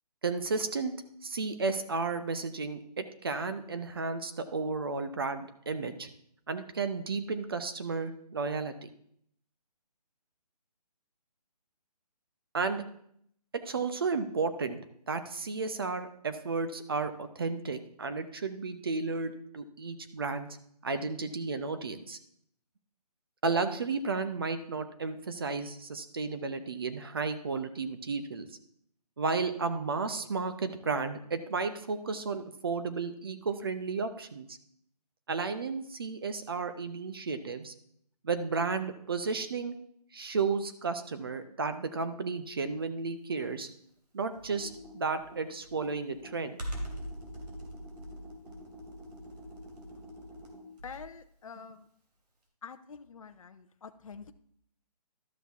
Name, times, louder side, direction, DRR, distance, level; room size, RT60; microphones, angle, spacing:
voice 1, 0.2-0.9 1.2-6.1 6.5-8.9 12.5-12.8 13.6-14.8 15.1-20.5 20.8-22.2 23.4-28.5 29.2-34.5 35.3-37.7 38.2-39.8 40.1-43.7 44.1-46.6, right 4 dB, 35° right, 9 dB, 0.7 m, -33 dB
Computer keyboard, 44.3-51.2, equal, 75° right, 2.8 m, -43 dB
voice 2, 50.8-51.8 52.6-54.3, left 6 dB, 55° left, 9 dB, 0.6 m, -46 dB
12.5 x 5.9 x 3.5 m, 0.67 s
hypercardioid pair, 170°, 21 cm